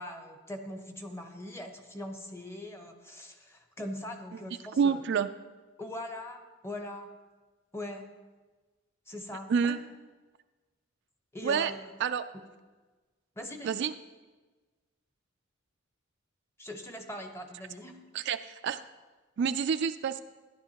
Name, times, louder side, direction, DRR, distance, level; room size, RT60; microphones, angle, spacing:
voice 1, 0.0-5.0 5.8-7.1 7.7-8.1 9.1-9.8 11.3-11.9 13.4-13.8 16.6-18.1, left 1 dB, 15° left, 4 dB, 0.9 m, -41 dB
voice 2, 4.8-5.3 9.5-9.8 11.4-11.7 12.0-12.2 13.6-13.9 18.1-18.8 19.4-20.2, right 6 dB, 55° right, 10 dB, 0.3 m, -28 dB
13.5 x 11.0 x 2.9 m, 1.3 s
head